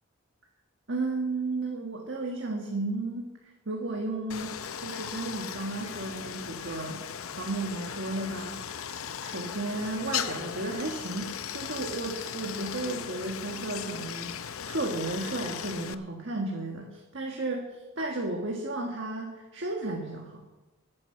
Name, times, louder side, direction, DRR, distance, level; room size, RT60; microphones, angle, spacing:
voice 1, 0.9-7.0 7.4-8.8 9.2-20.4, right 2 dB, 60° right, 0 dB, 1.6 m, -34 dB
Stream, 4.3-15.9, left 8 dB, 80° left, 0.6 m, -37 dB
13.0 x 9.7 x 6.6 m, 1.1 s
head